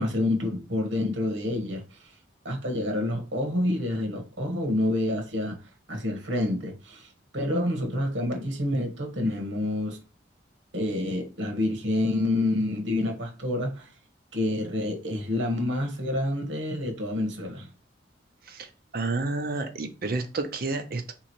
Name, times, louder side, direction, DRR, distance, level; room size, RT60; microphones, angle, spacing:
voice 1, 0.0-2.0 2.4-5.6 5.9-7.1 7.3-10.0 10.7-13.9 14.3-17.7, left 1 dB, 75° right, 1.2 m, -28 dB
voice 2, 18.4-21.1, right 3 dB, 50° right, 0.6 m, -30 dB
3.7 x 3.0 x 4.2 m
head